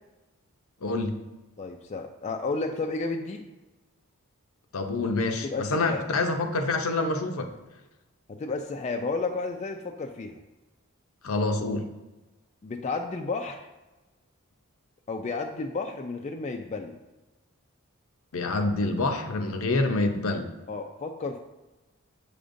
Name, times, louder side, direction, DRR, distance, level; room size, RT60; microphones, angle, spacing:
voice 1, 0.8-1.2 4.7-7.5 11.2-11.9 18.3-20.5, left 2 dB, 70° left, 5 dB, 0.6 m, -27 dB
voice 2, 1.6-3.4 5.4-6.1 8.3-10.4 12.6-13.7 15.1-17.0 20.7-21.4, left 3 dB, 30° left, 4 dB, 0.3 m, -32 dB
7.7 x 5.0 x 2.6 m, 1.1 s
head